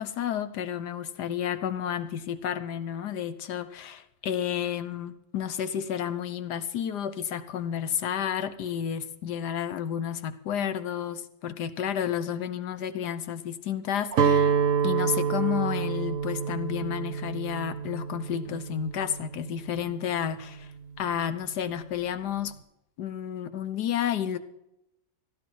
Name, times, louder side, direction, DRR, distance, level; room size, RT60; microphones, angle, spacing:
voice 1, 0.0-14.5 14.8-20.7 21.0-22.5 23.0-24.4, left 9 dB, 65° left, 12 dB, 1.5 m, -31 dB
Guitar, 14.1-20.2, right 6 dB, 55° right, 1.0 m, -28 dB
16.5 x 12.5 x 4.7 m, 0.83 s
omnidirectional pair, 2.0 m